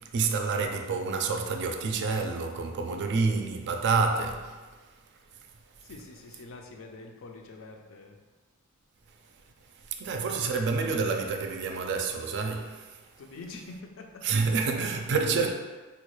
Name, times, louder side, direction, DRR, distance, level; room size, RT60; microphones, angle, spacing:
voice 1, 0.0-4.6 10.0-13.0 14.2-15.5, right 4 dB, 55° right, 0.4 m, -28 dB
voice 2, 5.8-8.2 13.2-14.6, left 3 dB, 65° left, 0.4 m, -45 dB
4.0 x 2.3 x 3.1 m
head